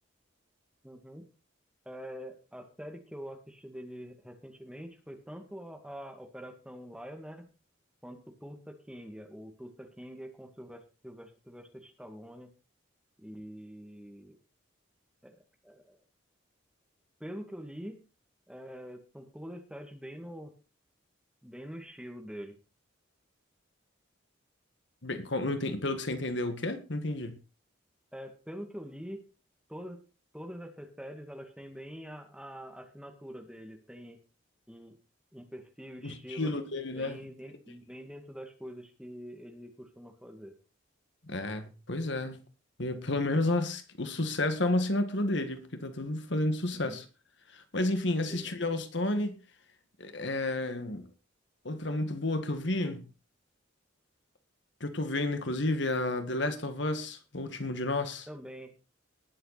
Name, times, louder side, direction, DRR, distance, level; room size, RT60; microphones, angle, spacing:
voice 1, 0.8-1.2 1.9-7.5 8.0-12.5 13.2-14.4 15.2-16.0 17.2-18.0 18.5-20.5 21.4-22.6 28.1-29.2 29.7-30.0 30.3-34.2 34.7-35.0 35.3-36.5 36.9-40.6 46.7-47.0 48.2-48.6 58.3-58.7, equal, 5° right, 2.2 m, -45 dB
voice 2, 25.0-27.4 36.0-37.2 41.3-42.4 42.8-47.1 47.5-49.3 50.0-51.1 51.7-53.1 54.8-58.3, left 2 dB, 60° left, 1.8 m, -31 dB
20.0 x 7.8 x 4.2 m
head